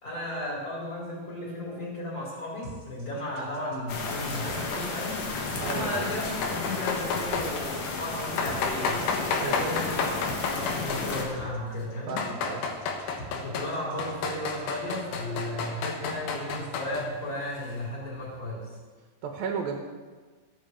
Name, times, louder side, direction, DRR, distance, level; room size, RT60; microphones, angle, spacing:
voice 1, 0.0-9.1 9.4-10.1 10.4-12.2 13.3-18.7, left 1 dB, 25° left, -5 dB, 4.6 m, -35 dB
sound 1, 2.6-14.1, equal, 40° right, 3.6 m, -45 dB
sound 2, 3.9-11.3, left 3 dB, 70° left, 3.2 m, -33 dB
voice 2, 5.6-6.1 9.3-9.8 12.1-12.6 19.2-19.7, right 5 dB, 90° right, 2 dB, 3.2 m, -33 dB
sound 3, 6.3-7.5 8.4-11.4 11.9-13.7 14.0-17.1, left 5 dB, 85° left, 3.1 m, -31 dB
13.5 x 8.6 x 7.6 m, 1.4 s
omnidirectional pair, 4.0 m